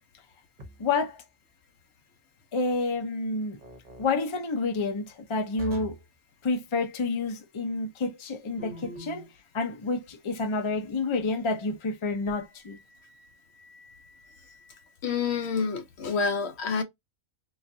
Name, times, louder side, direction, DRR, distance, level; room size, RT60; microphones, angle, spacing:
sound 1, 0.6-1.1 3.6-4.1 5.6-6.1 8.6-9.3, right 1 dB, 45° right, 0.8 m, -42 dB
voice 1, 0.8-1.2 2.5-3.6 4.0-5.9 6.4-9.3 9.5-12.8, left 3 dB, 40° left, 0.4 m, -29 dB
voice 2, 15.0-16.8, left 5 dB, 65° left, 0.7 m, -28 dB
3.8 x 2.4 x 2.5 m
omnidirectional pair, 1.4 m